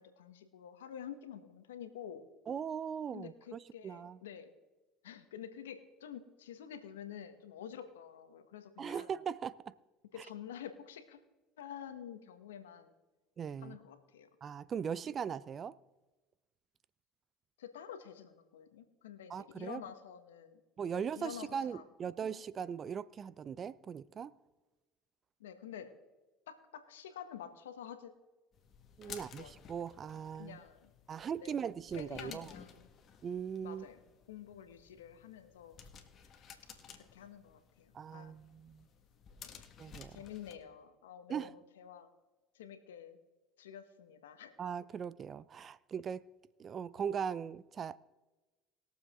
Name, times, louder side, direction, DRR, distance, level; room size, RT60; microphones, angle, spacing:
voice 1, 0.0-2.2 3.1-4.5 5.0-9.1 10.1-11.2 11.6-12.9 13.6-14.3 14.9-15.0 17.6-20.6 20.9-22.4 25.4-25.9 26.5-28.1 29.1-29.5 30.4-30.9 31.4-31.6 31.9-32.9 33.6-34.0 34.3-35.8 36.9-38.4 39.5-39.6 40.1-42.1 42.5-43.2 43.6-44.6, left 9 dB, 90° left, 1.2 m, -49 dB
voice 2, 2.5-4.2 8.8-9.7 13.4-13.8 14.4-15.8 19.3-19.8 20.8-24.3 29.0-30.6 31.1-32.5 33.2-33.9 37.9-38.8 39.8-40.2 41.3-41.5 44.6-46.2 46.6-48.0, right 7 dB, 40° right, 0.5 m, -39 dB
sound 1, 28.5-40.6, left 7 dB, 45° left, 1.6 m, -55 dB
21.0 x 7.3 x 3.7 m
hypercardioid pair, 75°, 0 cm